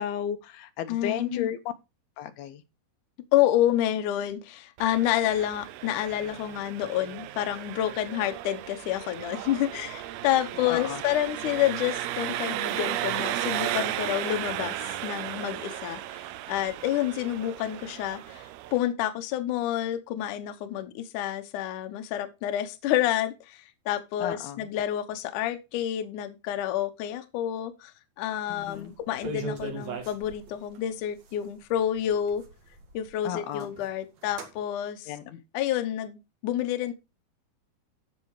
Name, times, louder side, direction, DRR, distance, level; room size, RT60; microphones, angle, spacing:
voice 1, 0.0-1.6 2.2-2.6 10.7-11.0 24.2-24.6 28.6-28.9 33.2-33.7 35.1-35.4, left 10 dB, 80° left, 2.9 m, -33 dB
voice 2, 0.9-1.5 3.3-32.4 32.9-35.2 35.5-36.9, left 12 dB, 65° left, 2.3 m, -29 dB
Engine, 4.8-18.8, right 14 dB, 85° right, 2.7 m, -35 dB
sound 1, 28.7-28.8 29.0-30.8 31.4-31.5 31.8-33.1 33.4-33.9 34.2-34.5, right 3 dB, 50° right, 3.1 m, -38 dB
14.5 x 5.6 x 4.8 m
omnidirectional pair, 4.4 m